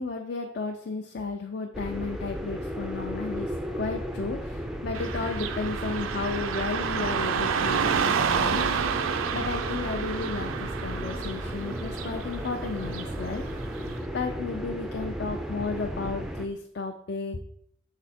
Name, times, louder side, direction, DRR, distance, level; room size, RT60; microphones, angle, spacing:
voice 1, 0.0-8.9 9.3-13.7 14.1-17.4, left 4 dB, 55° left, 3 dB, 0.5 m, -33 dB
sound 1, 1.7-16.5, equal, 5° right, 0.4 m, -35 dB
Car passing by / Traffic noise roadway noise, 4.9-14.0, right 6 dB, 85° right, 0.5 m, -30 dB
5.9 x 4.2 x 4.2 m, 0.69 s
head